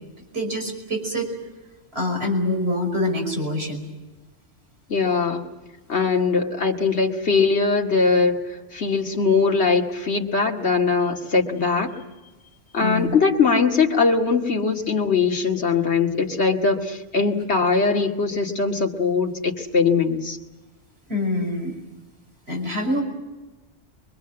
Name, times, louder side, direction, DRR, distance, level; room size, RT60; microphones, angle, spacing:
voice 1, 0.3-1.3 1.9-3.8 12.8-13.1 21.1-21.7 22.5-23.0, left 1 dB, 60° right, 1 dB, 5.9 m, -25 dB
voice 2, 4.9-5.4 5.9-12.0 12.7-20.4, left 4 dB, 60° left, 0 dB, 2.4 m, -21 dB
24.5 x 23.5 x 7.9 m, 1.2 s
omnidirectional pair, 1.2 m